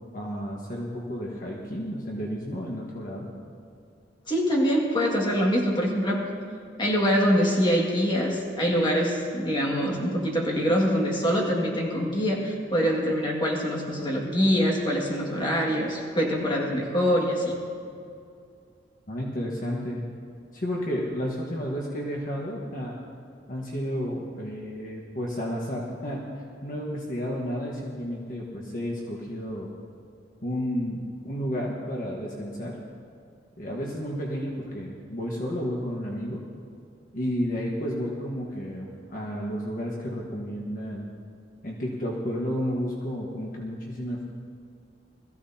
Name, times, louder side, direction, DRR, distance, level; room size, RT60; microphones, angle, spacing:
voice 1, 0.1-3.3 19.1-20.0 20.5-23.0 23.5-29.7 30.4-32.7 33.6-36.4 37.1-41.1 41.6-44.2, equal, 50° left, -3 dB, 1.5 m, -32 dB
voice 2, 4.3-6.3 6.8-17.6, equal, 25° left, -2 dB, 2.1 m, -24 dB
21.5 x 14.5 x 2.9 m, 2.4 s
head